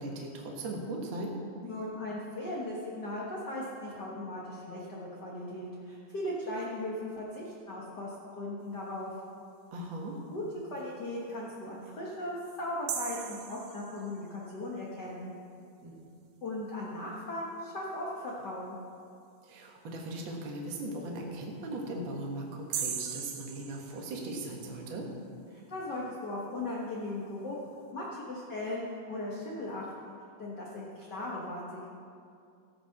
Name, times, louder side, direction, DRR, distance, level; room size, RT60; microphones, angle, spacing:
voice 1, 0.0-1.3 9.7-10.1 15.8-15.9 19.4-25.1, right 1 dB, 45° right, -1 dB, 1.8 m, -38 dB
voice 2, 1.6-9.1 10.3-10.4 10.7-15.3 16.4-18.8 25.5-27.6 27.9-30.1 30.4-31.9, left 1 dB, 50° left, -4 dB, 1.3 m, -38 dB
sound 1, 12.9-14.4 22.7-24.5, right 8 dB, 75° right, 2.5 m, -38 dB
15.5 x 7.7 x 5.9 m, 2.5 s
omnidirectional pair, 3.9 m